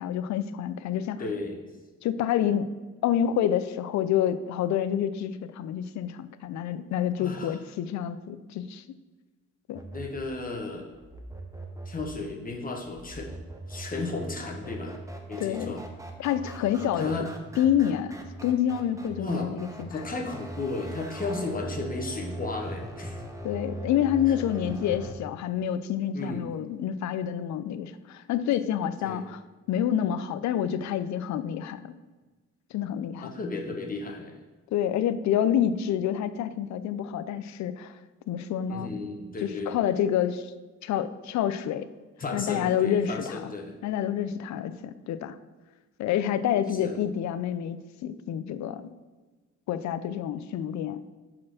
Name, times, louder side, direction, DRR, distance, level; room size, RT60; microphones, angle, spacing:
voice 1, 0.0-1.2 2.0-2.7 3.0-8.8 9.7-9.8 15.4-15.8 16.2-17.3 17.6-18.2 18.4-19.9 23.4-29.4 29.7-31.9 32.7-33.3 34.7-37.9 38.3-38.9 39.4-40.5 40.8-41.9 42.3-43.5 43.8-45.3 46.0-48.8 49.7-51.0, left 10 dB, 65° left, 13 dB, 0.5 m, -28 dB
voice 2, 1.2-1.7 7.2-7.6 9.9-10.9 11.8-13.3 13.7-15.0 15.3-15.8 17.0-17.3 19.2-19.5 19.9-23.2 26.1-26.5 29.0-29.2 33.2-34.4 38.7-39.7 42.2-43.8 46.8-46.9, left 3 dB, 30° left, 1 dB, 1.1 m, -34 dB
sound 1, 9.7-25.1, right 2 dB, 10° right, 0.9 m, -41 dB
4.9 x 4.4 x 5.9 m, 1.3 s
cardioid pair, 90°, 30 cm